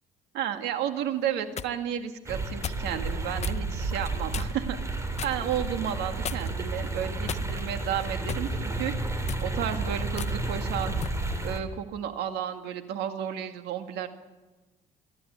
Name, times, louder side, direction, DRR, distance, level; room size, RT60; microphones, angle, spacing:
voice 1, 0.3-8.9 9.4-10.9 11.4-14.1, right 10 dB, 85° right, 7 dB, 2.0 m, -32 dB
sound 1, 1.2-1.7 2.6-2.9 3.4-3.6 4.3-4.7 5.2-5.4 6.2-6.6 7.3-7.8 8.3-8.5 9.2-9.5 10.2-10.3 11.0-11.2, left 8 dB, 40° left, 0.7 m, -36 dB
sound 2, 2.3-11.6, right 2 dB, 15° right, 3.1 m, -31 dB
28.5 x 12.0 x 8.4 m, 1.2 s
cardioid pair, 110°, 17 cm